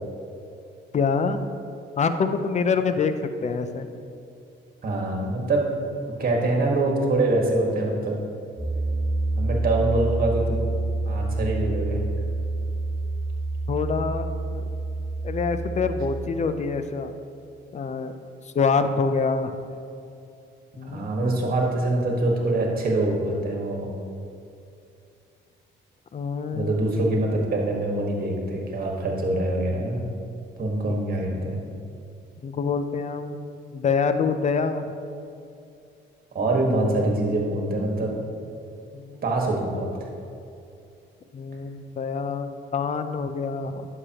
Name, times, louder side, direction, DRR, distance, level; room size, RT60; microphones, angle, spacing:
voice 1, 0.9-1.4 2.0-3.1 3.4-3.9 13.7-14.3 14.5-14.6 15.2-17.1 17.7-18.1 18.5-19.6 20.8-21.1 26.1-26.8 30.9-31.0 31.3-31.4 32.4-34.9 38.9-39.3 41.3-43.9, left 5 dB, 35° left, 10 dB, 0.5 m, -26 dB
voice 2, 4.8-5.7 6.2-8.2 9.3-10.8 11.1-12.0 20.8-23.9 26.5-30.0 30.6-31.6 36.3-38.2 39.2-39.9, right 2 dB, 50° right, 0 dB, 1.6 m, -24 dB
Piano, 8.6-16.2, right 2 dB, 20° right, 1.1 m, -27 dB
9.7 x 6.6 x 2.9 m, 2.6 s
cardioid pair, 90°, 20 cm